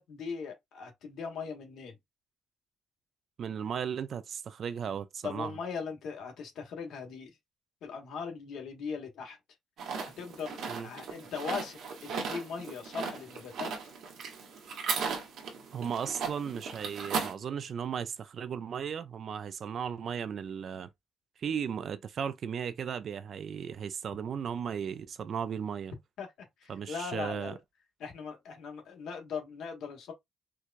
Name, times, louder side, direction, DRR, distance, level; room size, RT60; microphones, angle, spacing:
voice 1, 0.0-1.9 5.2-7.4 7.8-9.4 10.2-13.7 26.2-26.3 26.6-27.6 28.0-30.1, left 5 dB, 65° left, 1.2 m, -39 dB
voice 2, 3.4-5.5 10.7-10.9 15.7-20.9 21.4-25.9 26.7-27.6, right 7 dB, 40° right, 0.3 m, -36 dB
sound 1, 9.8-17.3, right 5 dB, 65° right, 1.1 m, -37 dB
4.5 x 2.3 x 2.4 m
cardioid pair, 180°, 0 cm